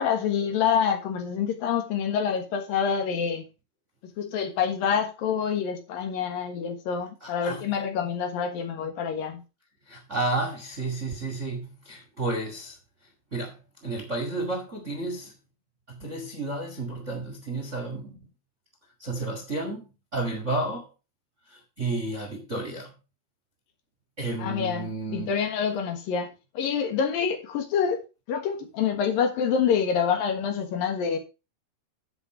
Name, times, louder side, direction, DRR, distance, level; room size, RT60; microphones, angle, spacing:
voice 1, 0.0-3.4 4.2-9.4 24.4-28.0 28.3-31.2, left 7 dB, 70° left, 3.1 m, -27 dB
voice 2, 7.2-7.6 9.9-12.8 13.3-13.5 13.8-15.3 15.9-18.2 19.0-20.9 21.5-22.9 24.2-25.3, right 2 dB, 30° right, 1.4 m, -31 dB
10.0 x 7.4 x 4.4 m
omnidirectional pair, 4.4 m